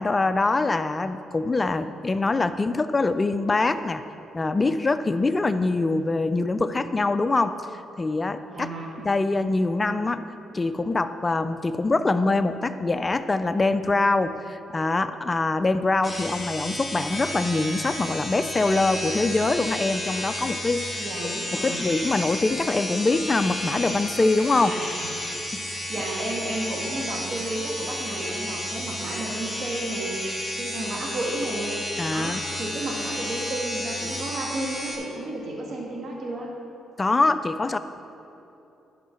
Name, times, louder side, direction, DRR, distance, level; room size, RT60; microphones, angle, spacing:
voice 1, 0.0-4.0 4.3-7.6 8.0-8.7 9.0-10.3 10.5-21.0 21.5-24.7 25.5-25.6 32.0-32.4 37.0-37.8, left 3 dB, 25° left, 11 dB, 0.4 m, -24 dB
voice 2, 8.5-8.9 20.9-21.8 24.4-25.1 25.9-30.2 30.6-31.8 32.1-36.5, right 1 dB, 55° right, -2 dB, 1.7 m, -32 dB
sound 1, 16.0-35.0, left 1 dB, 5° right, 2.1 m, -32 dB
11.0 x 5.4 x 5.8 m, 2.9 s
cardioid pair, 90°, 0 cm